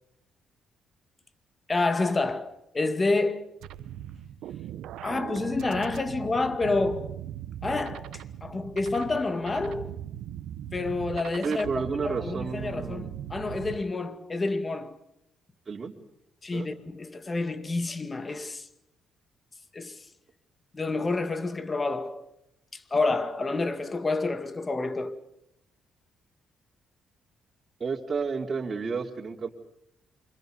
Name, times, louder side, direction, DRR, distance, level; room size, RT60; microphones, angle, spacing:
voice 1, 1.7-3.5 5.0-7.2 7.6-10.0 10.7-15.0 16.4-18.7 19.7-20.1 20.7-22.3 22.7-25.2, left 3 dB, 25° left, 2.2 m, -29 dB
sound 1, 3.6-13.8, right 11 dB, 85° right, 1.1 m, -39 dB
voice 2, 11.4-13.1 15.7-15.9 16.5-16.7 27.8-29.5, right 5 dB, 35° right, 3.6 m, -31 dB
28.5 x 26.0 x 5.3 m
cardioid pair, 90°, 0 cm